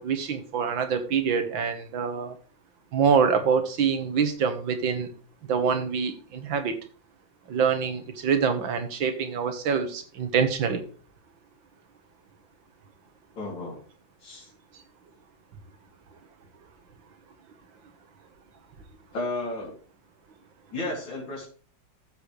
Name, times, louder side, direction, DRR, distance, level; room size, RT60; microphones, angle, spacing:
voice 1, 0.0-2.4 2.9-5.1 5.5-6.8 7.5-10.8, right 6 dB, 80° right, 8 dB, 2.2 m, -25 dB
voice 2, 13.3-13.8 14.2-14.5 19.1-19.8 20.7-21.5, left 2 dB, 75° left, -4 dB, 4.0 m, -33 dB
14.0 x 7.8 x 3.3 m, 0.42 s
omnidirectional pair, 2.1 m